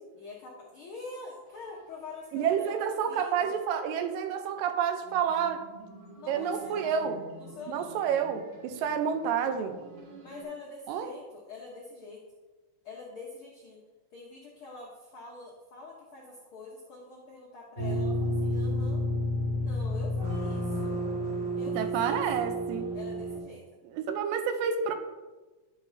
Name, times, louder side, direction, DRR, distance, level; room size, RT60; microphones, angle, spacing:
voice 1, 0.1-3.6 6.2-7.1 7.4-7.9 10.2-12.2 12.8-13.8 14.1-19.1 19.6-21.0 21.6-22.5 22.9-23.7, left 3 dB, 75° left, -3 dB, 1.2 m, -45 dB
sound 1, 1.5-2.9 3.2-4.2 5.0-10.4, right 1 dB, 65° right, 2.7 m, -51 dB
voice 2, 2.3-5.6 6.3-7.2 7.7-9.8 10.9-11.1 21.8-22.9 23.9-24.9, right 7 dB, 85° right, 7 dB, 2.4 m, -29 dB
sound 2, 17.8-23.4, equal, 35° right, 2.1 m, -30 dB
10.5 x 7.1 x 2.6 m, 1.2 s
omnidirectional pair, 3.8 m